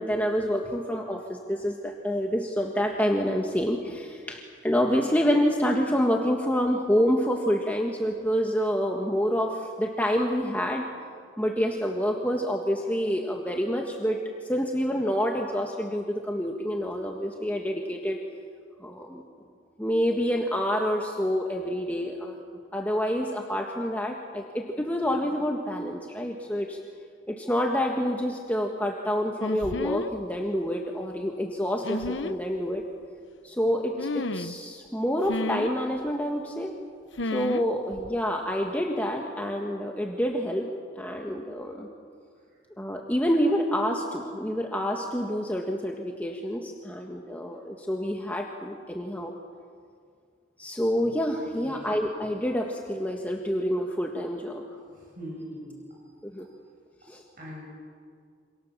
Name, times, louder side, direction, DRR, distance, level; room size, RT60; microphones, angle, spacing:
voice 1, 0.0-10.9 11.4-14.2 14.4-18.2 18.8-19.2 19.8-22.4 22.7-26.8 27.3-32.8 33.4-36.7 37.2-40.7 41.0-41.9 42.8-49.3 50.6-54.6 56.2-56.5 57.1-57.2, equal, 10° left, 0 dB, 1.7 m, -27 dB
sound 1, 29.4-30.1 31.8-32.4 34.0-34.6 35.3-35.7 37.2-37.7 37.9-38.2, left 2 dB, 85° left, 1.1 m, -31 dB
voice 2, 54.9-55.7 57.4-57.7, equal, 50° right, -4 dB, 6.9 m, -41 dB
28.0 x 27.5 x 7.4 m, 2.2 s
head